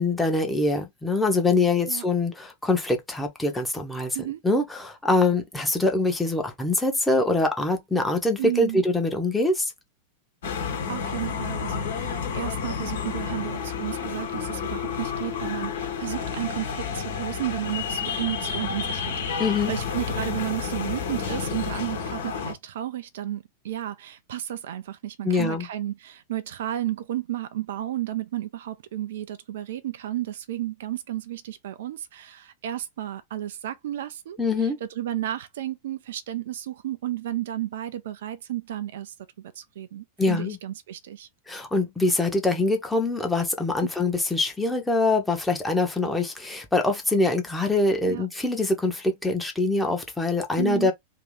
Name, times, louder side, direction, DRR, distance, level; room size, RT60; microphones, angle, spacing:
voice 1, 0.0-4.2 4.4-9.7 19.4-19.7 25.2-25.7 34.4-34.8 40.2-40.6 41.5-50.9, left 2 dB, 5° left, 1.0 m, -24 dB
voice 2, 8.4-8.8 10.9-34.4 34.8-41.3 48.1-48.3 50.5-50.9, right 13 dB, 60° right, 0.4 m, -32 dB
sound 1, 10.4-22.5, left 6 dB, 60° left, 1.3 m, -30 dB
3.0 x 2.9 x 3.7 m
figure-of-eight pair, 90°, 0 cm